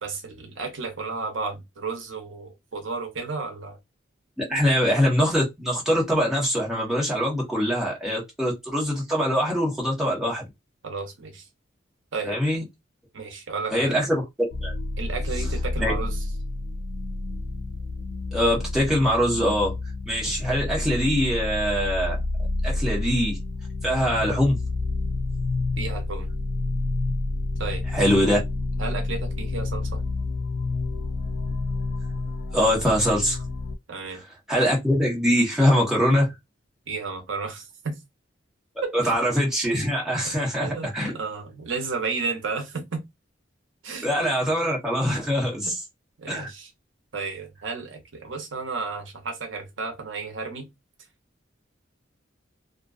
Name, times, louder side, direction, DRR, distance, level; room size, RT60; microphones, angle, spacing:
voice 1, 0.0-3.8 10.8-11.4 12.1-12.4 13.1-14.0 15.0-16.2 25.8-26.3 27.6-28.0 28.8-30.0 33.9-34.2 36.9-38.0 38.8-39.3 40.6-43.0 43.8-44.1 45.6-45.7 46.2-46.7 47.1-50.7, right 4 dB, 85° right, 0.7 m, -33 dB
voice 2, 4.4-10.5 12.2-12.6 13.7-14.2 14.6-14.7 15.8-15.9 18.3-19.7 20.1-22.2 22.6-23.4 23.8-24.6 27.9-28.4 32.5-33.4 34.5-36.3 38.9-41.1 44.0-45.8 46.3-46.5, equal, 5° right, 1.0 m, -23 dB
sound 1, 14.5-33.8, left 2 dB, 60° left, 0.3 m, -29 dB
2.5 x 2.3 x 2.3 m
head